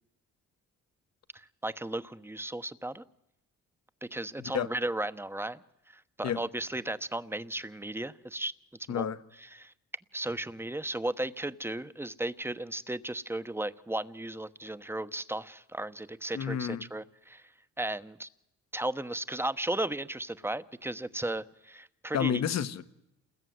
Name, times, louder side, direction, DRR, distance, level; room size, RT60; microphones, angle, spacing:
voice 1, 1.3-3.0 4.0-8.5 8.9-9.1 9.4-9.7 10.1-17.5 17.8-18.3 18.7-22.4, right 1 dB, 10° right, 1.1 m, -35 dB
voice 2, 16.3-16.8 22.1-22.8, left 8 dB, 60° left, 1.5 m, -30 dB
28.5 x 20.5 x 9.5 m
cardioid pair, 90°, 30 cm